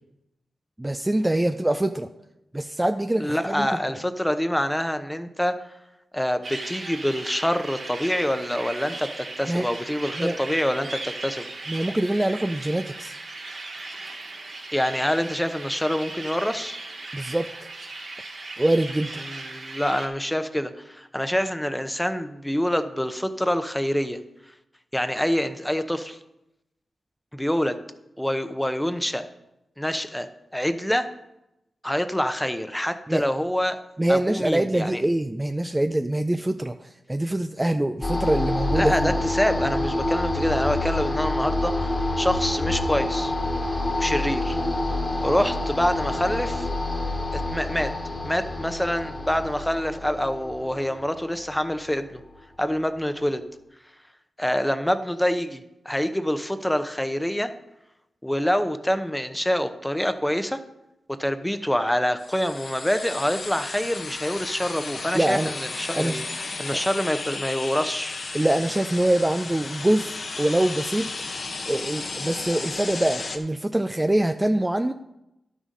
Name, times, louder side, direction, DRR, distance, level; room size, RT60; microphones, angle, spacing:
voice 1, 0.8-2.1 2.5-3.7 9.5-9.7 10.2-10.4 11.7-13.2 17.1-17.7 18.6-19.2 33.1-33.3 34.0-39.1 65.1-65.5 65.9-66.2 66.7-66.8 68.3-71.1 71.7-74.9, right 1 dB, 15° right, 8 dB, 0.4 m, -24 dB
voice 2, 3.2-5.6 6.1-11.5 14.7-16.8 19.3-24.2 24.9-26.2 27.3-27.8 28.2-29.2 29.8-30.3 30.5-31.1 31.8-33.8 34.1-35.0 38.7-43.3 44.0-44.6 45.2-46.7 47.3-47.9 48.2-52.2 52.6-53.4 54.4-57.5 58.2-60.6 61.1-68.2, equal, 5° left, 9 dB, 0.8 m, -26 dB
sound 1, 6.4-20.1, right 2 dB, 65° right, 2.1 m, -37 dB
sound 2, 38.0-52.2, left 2 dB, 30° left, 1.6 m, -27 dB
sound 3, 62.2-73.4, left 3 dB, 55° left, 1.0 m, -34 dB
11.0 x 6.4 x 5.3 m, 0.90 s
cardioid pair, 60°, 0 cm